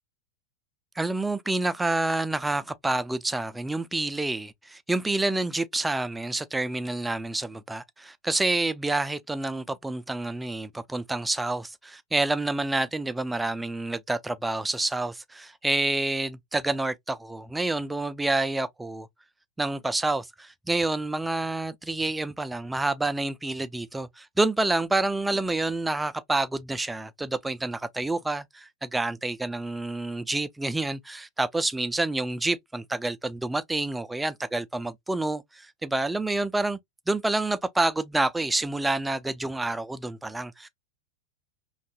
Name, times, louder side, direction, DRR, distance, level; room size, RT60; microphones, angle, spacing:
voice 1, 1.0-19.1 19.6-36.8 37.1-40.7, right 2 dB, 5° right, 0.3 m, -28 dB
2.8 x 2.3 x 2.5 m
figure-of-eight pair, 90°, 0 cm